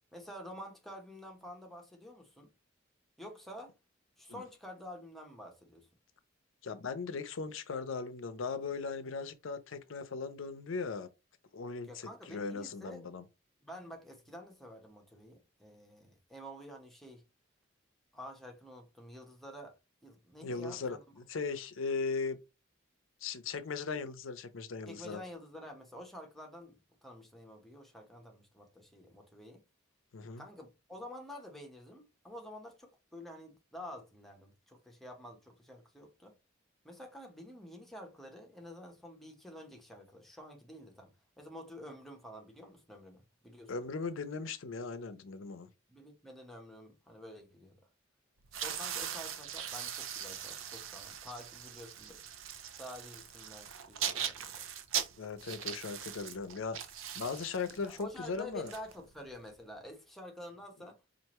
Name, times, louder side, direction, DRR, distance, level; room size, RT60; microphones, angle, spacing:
voice 1, 0.1-2.5 3.2-3.7 4.2-5.9 11.9-13.1 13.6-17.2 18.1-19.7 20.0-21.0 24.9-29.6 30.4-36.3 36.8-43.7 45.9-47.8 48.5-52.2 52.7-54.7 57.7-61.0, left 1 dB, ahead, 0.9 m, -49 dB
voice 2, 6.6-11.1 11.5-13.2 20.4-21.0 21.3-22.4 23.2-25.2 30.1-30.4 43.7-45.7 55.2-56.8 57.1-58.7, left 4 dB, 75° left, 0.6 m, -38 dB
sound 1, 48.4-59.5, right 8 dB, 80° right, 0.5 m, -40 dB
4.5 x 2.5 x 3.0 m
head